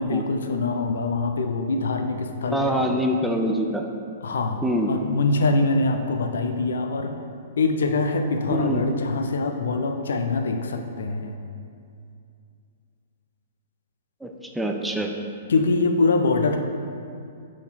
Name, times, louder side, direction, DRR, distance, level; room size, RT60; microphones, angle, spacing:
voice 1, 0.0-2.8 4.2-7.1 7.6-11.4 15.5-16.6, left 3 dB, 65° left, 5 dB, 0.5 m, -24 dB
voice 2, 2.5-3.8 4.6-4.9 8.5-8.8 14.2-15.1, equal, 5° right, 2 dB, 0.4 m, -24 dB
6.0 x 4.0 x 4.5 m, 2.4 s
figure-of-eight pair, 110°, 0 cm